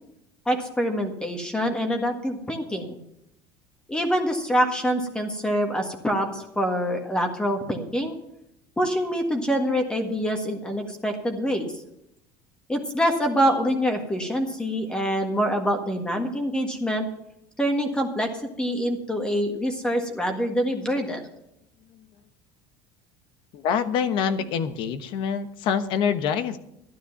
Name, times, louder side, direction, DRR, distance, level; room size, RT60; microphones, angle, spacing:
voice 1, 0.5-3.0 3.9-8.2 8.8-11.7 12.7-17.1 17.6-18.3 18.6-21.2, equal, 10° left, 4 dB, 1.6 m, -25 dB
voice 2, 23.5-26.6, left 7 dB, 60° left, 11 dB, 1.1 m, -25 dB
12.5 x 9.9 x 5.9 m, 0.82 s
supercardioid pair, 125°, 10 cm